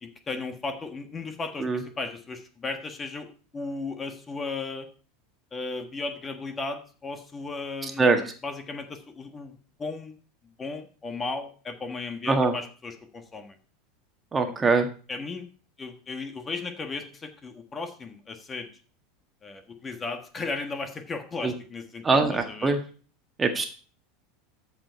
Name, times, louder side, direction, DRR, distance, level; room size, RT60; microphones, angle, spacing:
voice 1, 0.0-3.3 3.5-4.9 5.5-9.5 9.8-10.2 10.6-13.5 15.1-15.5 15.8-18.7 19.4-22.1 22.3-22.7, left 3 dB, 25° left, 7 dB, 1.5 m, -35 dB
voice 2, 7.8-8.2 12.3-12.5 14.3-14.9 21.4-21.5 22.0-22.8 23.4-23.7, right 3 dB, 20° right, 5 dB, 1.7 m, -22 dB
13.5 x 5.0 x 4.6 m, 0.40 s
hypercardioid pair, 85°, 0 cm